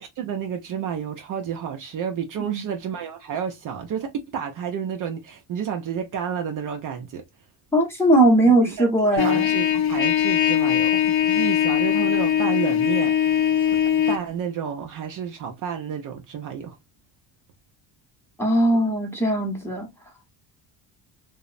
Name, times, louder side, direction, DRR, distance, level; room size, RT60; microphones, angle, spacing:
voice 1, 0.0-7.2 8.4-13.8 14.1-16.8, right 7 dB, 45° right, 0.5 m, -31 dB
voice 2, 7.7-9.5 18.4-19.9, right 1 dB, 5° left, 0.8 m, -19 dB
Trumpet, 9.2-14.2, left 9 dB, 30° left, 0.4 m, -21 dB
3.0 x 2.0 x 2.4 m
cardioid pair, 120°, 44 cm